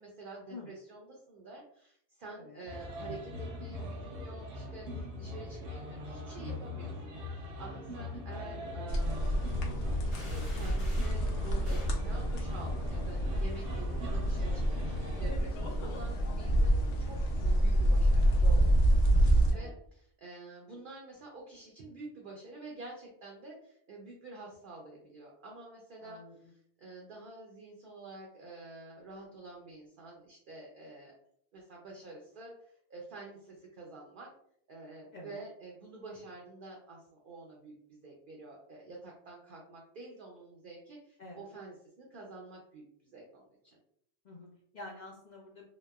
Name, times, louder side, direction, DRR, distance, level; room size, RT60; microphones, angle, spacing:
voice 1, 0.0-7.0 7.3-9.4 10.3-18.3 19.1-31.1 31.5-34.3 34.7-43.8, right 3 dB, 60° right, -1 dB, 0.6 m, -49 dB
sound 1, 2.7-15.4, left 2 dB, 75° right, 1.0 m, -40 dB
sound 2, 8.9-19.5, right 1 dB, 85° left, 0.9 m, -28 dB
sound 3, 10.1-11.3 11.6-12.0, equal, 35° left, 0.9 m, -49 dB
voice 2, 18.4-18.7 19.0-19.8 26.0-26.3 35.1-35.4 41.2-41.4 44.2-45.7, left 2 dB, 55° left, -4 dB, 0.5 m, -48 dB
2.9 x 2.0 x 2.2 m, 0.68 s
omnidirectional pair, 1.2 m